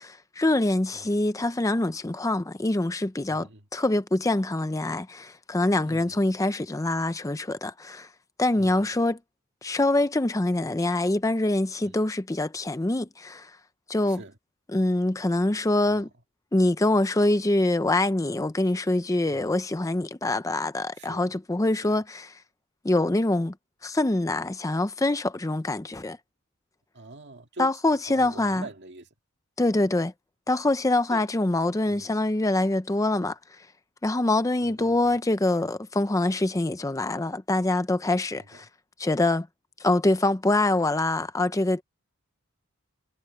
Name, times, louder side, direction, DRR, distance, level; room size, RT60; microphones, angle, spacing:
voice 1, 0.0-8.1 8.4-9.2 9.6-13.6 13.9-14.2 14.7-16.1 16.5-22.3 22.8-23.5 23.8-26.2 27.6-28.6 29.6-30.1 30.5-33.7 34.0-38.7 39.0-39.5 39.8-41.8, left 2 dB, 15° left, 0.5 m, -25 dB
voice 2, 3.3-3.6 5.8-6.2 8.5-8.9 11.8-12.0 14.1-14.4 15.9-16.1 19.3-19.5 21.0-21.3 21.8-22.0 26.9-27.7 28.1-29.1 31.1-31.3 31.9-32.2 34.6-35.1 38.4-38.6, right 2 dB, 55° right, 2.0 m, -44 dB
head